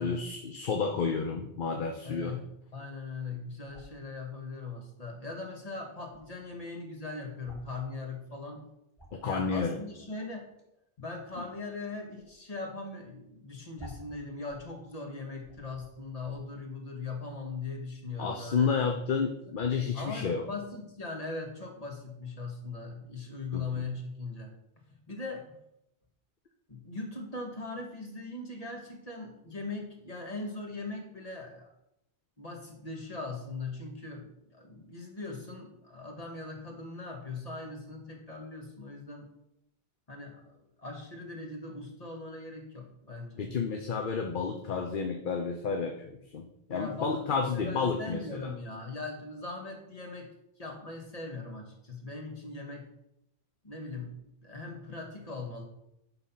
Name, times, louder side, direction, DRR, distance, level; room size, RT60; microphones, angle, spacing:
voice 1, 0.0-2.4 9.1-9.8 11.4-11.5 18.2-20.4 23.5-23.9 43.4-48.5, left 5 dB, 55° left, 4 dB, 0.9 m, -31 dB
voice 2, 2.0-2.5 2.7-8.6 9.2-10.4 11.0-19.0 19.4-19.5 19.9-24.5 25.1-25.5 26.7-31.7 32.4-39.3 40.1-40.4 40.8-43.5 46.7-50.3 50.6-52.9 53.6-54.2 54.4-55.6, left 3 dB, 35° left, 0 dB, 1.9 m, -40 dB
sound 1, 3.6-4.0 5.2-5.3 5.6-5.7 5.9-6.2 7.4-7.8 8.3-8.4 8.7-9.3 10.6-10.8 11.5-11.8 12.1-12.3 12.8-12.9 13.1-13.2 13.7-14.7 15.1-15.2 15.4-15.9 16.1-16.4, right 1 dB, ahead, 2.7 m, -51 dB
11.5 x 4.0 x 5.7 m, 0.80 s
omnidirectional pair, 1.1 m